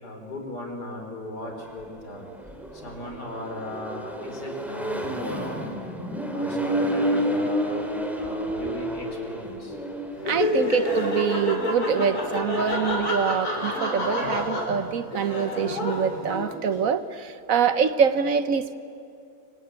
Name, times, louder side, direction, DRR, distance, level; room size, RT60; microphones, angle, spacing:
voice 1, 0.0-2.2 2.7-5.6 6.3-7.9 8.2-9.7, left 1 dB, 80° left, 3 dB, 4.8 m, -37 dB
Accelerating revving vroom, 1.5-11.9, equal, ahead, 2.7 m, -30 dB
Laughter, 10.2-16.7, left 2 dB, 65° left, 4.6 m, -28 dB
voice 2, 10.3-18.8, right 7 dB, 60° right, 12 dB, 1.2 m, -25 dB
25.5 x 24.0 x 9.4 m, 2.6 s
omnidirectional pair, 1.7 m